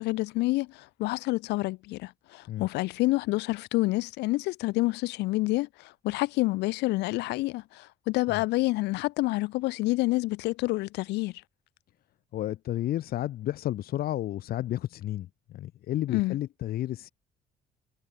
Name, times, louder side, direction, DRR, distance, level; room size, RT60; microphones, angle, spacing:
voice 1, 0.0-11.3 16.1-16.4, left 20 dB, 90° left, 2.7 m, -28 dB
voice 2, 12.3-17.1, left 13 dB, 65° left, 1.1 m, -32 dB
cardioid pair, 110°, 17 cm